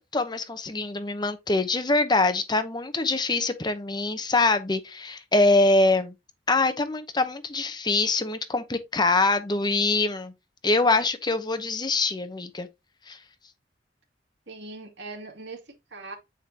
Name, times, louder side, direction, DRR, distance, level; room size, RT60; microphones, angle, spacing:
voice 1, 0.0-6.1 6.5-10.3 10.6-12.7 13.1-13.2, left 2 dB, 25° left, 0.9 m, -24 dB
voice 2, 14.5-16.2, right 3 dB, 90° right, 2.4 m, -41 dB
9.0 x 5.0 x 2.8 m
head